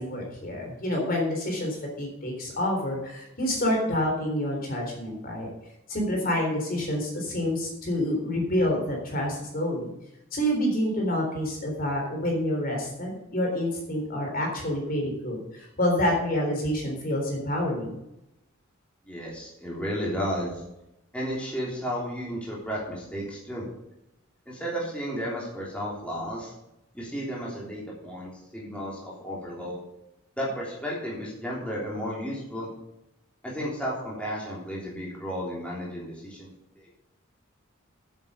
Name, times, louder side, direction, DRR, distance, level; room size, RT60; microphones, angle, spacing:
voice 1, 0.0-5.5 5.9-9.9 10.3-18.0, left 1 dB, 45° left, 0 dB, 3.8 m, -28 dB
voice 2, 19.1-20.6 21.1-23.6 24.5-26.5 26.9-29.8 30.4-32.7 33.4-36.5 36.8-36.9, equal, 5° left, -5 dB, 3.3 m, -33 dB
9.6 x 8.1 x 6.8 m, 0.86 s
head